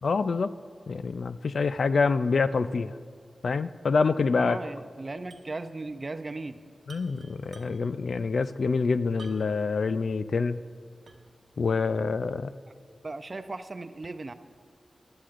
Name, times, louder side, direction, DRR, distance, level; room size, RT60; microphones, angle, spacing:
voice 1, 0.0-0.5 0.9-2.9 3.4-4.6 6.9-10.6 11.6-12.5, left 4 dB, 75° left, 13 dB, 0.3 m, -26 dB
voice 2, 4.4-6.6 13.0-14.3, right 2 dB, 35° right, 10 dB, 0.5 m, -37 dB
sound 1, 5.3-5.6 5.8-5.9 6.8-8.0 9.2-9.7 10.2-10.3 11.1-11.4, right 3 dB, 80° right, 0.9 m, -52 dB
16.0 x 11.5 x 2.5 m, 2.2 s
wide cardioid pair, 115°, 0 cm